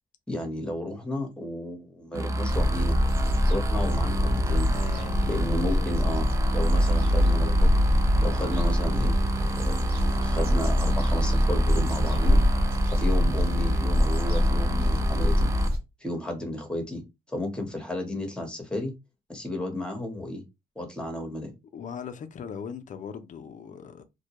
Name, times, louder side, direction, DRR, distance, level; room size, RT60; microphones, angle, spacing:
voice 1, 0.3-3.0 3.5-4.7 5.3-7.7 8.2-9.1 9.6-12.4 12.9-15.5 16.0-17.0 17.3-18.9 19.3-20.4 20.8-21.5, left 1 dB, 5° left, 1.0 m, -33 dB
sound 1, 2.1-15.7, right 1 dB, 20° right, 0.3 m, -30 dB
sound 2, 2.5-15.8, equal, 65° right, 0.9 m, -24 dB
voice 2, 4.7-5.9 13.5-13.8 21.7-24.0, left 7 dB, 50° left, 0.5 m, -39 dB
2.2 x 2.1 x 2.9 m
cardioid pair, 90°, 16 cm